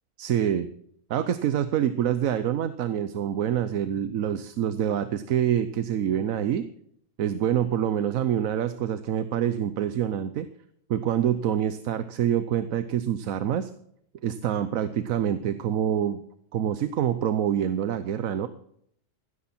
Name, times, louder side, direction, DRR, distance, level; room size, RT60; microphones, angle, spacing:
voice 1, 0.2-0.7 1.1-6.7 7.2-10.5 10.9-13.7 14.2-16.2 16.5-18.5, right 10 dB, 85° right, 12 dB, 1.2 m, -26 dB
16.0 x 13.0 x 4.3 m, 0.67 s
omnidirectional pair, 1.4 m